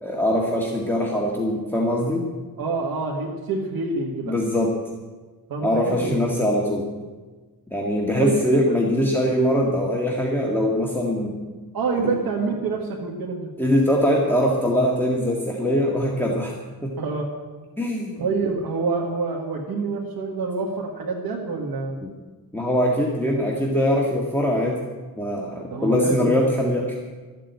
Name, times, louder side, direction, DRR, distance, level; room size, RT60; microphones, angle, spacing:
voice 1, 0.0-2.3 4.3-4.7 5.6-6.9 7.7-11.4 12.0-12.1 13.6-16.6 16.8-17.0 17.8-18.2 22.0-22.1 22.5-24.9 25.2-26.9, equal, 5° left, -2 dB, 1.8 m, -22 dB
voice 2, 2.6-4.4 5.5-6.3 8.2-8.7 11.7-13.5 17.0-17.4 18.2-22.0 25.7-26.5, right 4 dB, 75° right, -2 dB, 1.8 m, -27 dB
13.5 x 7.6 x 9.2 m, 1.3 s
cardioid pair, 100°, 36 cm